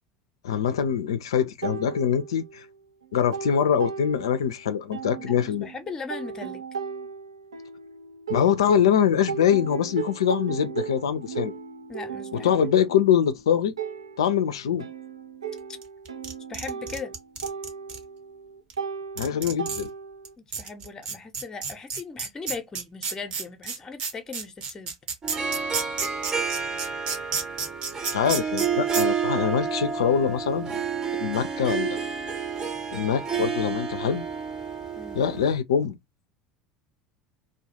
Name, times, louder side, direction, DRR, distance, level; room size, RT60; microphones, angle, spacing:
voice 1, 0.4-2.6 3.1-5.7 8.3-11.5 12.3-13.7 14.2-14.9 19.2-19.9 28.1-30.8 31.2-32.0 32.9-34.2 35.2-36.0, left 8 dB, 75° left, 0.4 m, -24 dB
sound 1, 1.6-2.7 3.0-4.6 4.9-8.9 9.3-20.3, right 6 dB, 85° right, 0.4 m, -36 dB
voice 2, 5.2-6.6 11.9-12.6 16.5-17.1 20.4-24.9 34.9-35.3, left 4 dB, 25° left, 0.6 m, -38 dB
sound 2, 15.8-18.0 18.7-18.8 19.2-19.9 20.2-20.3 20.5-28.7 28.9-29.0, right 5 dB, 55° right, 1.0 m, -30 dB
Harp, 25.2-35.5, right 6 dB, 25° right, 0.7 m, -30 dB
2.3 x 2.1 x 2.8 m
figure-of-eight pair, 70°, 3 cm